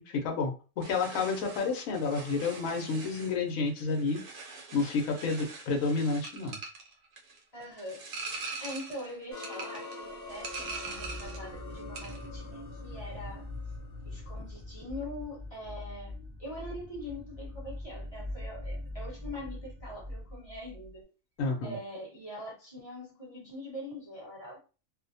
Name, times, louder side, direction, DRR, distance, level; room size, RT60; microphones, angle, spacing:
voice 1, 0.0-4.2 4.5-6.6 21.4-21.7, left 4 dB, 80° left, 1.0 m, -30 dB
sound 1, 0.8-11.5 11.8-12.3, right 4 dB, 65° right, 1.0 m, -43 dB
voice 2, 7.5-13.5 14.1-21.1 21.6-24.6, left 1 dB, 30° left, 1.0 m, -43 dB
sound 2, 9.3-14.3, left 3 dB, 50° left, 0.9 m, -46 dB
sound 3, 10.3-20.9, left 1 dB, 30° right, 0.6 m, -42 dB
2.6 x 2.1 x 2.6 m
omnidirectional pair, 1.4 m